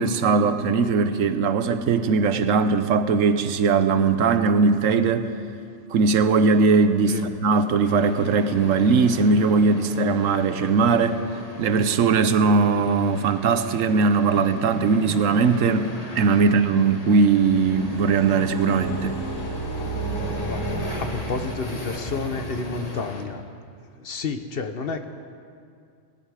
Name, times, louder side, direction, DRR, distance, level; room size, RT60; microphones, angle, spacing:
voice 1, 0.0-5.3 5.9-11.2 11.6-19.2, right 4 dB, 75° right, 11 dB, 1.1 m, -20 dB
sound 1, 7.8-23.2, left 1 dB, 30° left, 1.6 m, -38 dB
sound 2, 17.4-22.1, right 2 dB, 75° left, 2.9 m, -32 dB
voice 2, 20.5-23.4 24.0-25.0, left 4 dB, 50° left, 8 dB, 0.9 m, -31 dB
19.0 x 15.5 x 4.9 m, 2.3 s
omnidirectional pair, 1.4 m